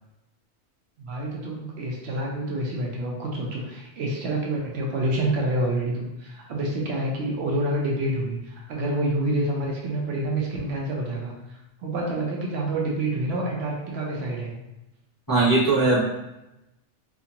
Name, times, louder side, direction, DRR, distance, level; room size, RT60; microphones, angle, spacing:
voice 1, 1.0-14.5, right 1 dB, 70° right, -2 dB, 0.8 m, -28 dB
voice 2, 15.3-16.0, right 3 dB, 20° left, -10 dB, 0.6 m, -19 dB
2.5 x 2.4 x 2.8 m, 0.94 s
omnidirectional pair, 1.2 m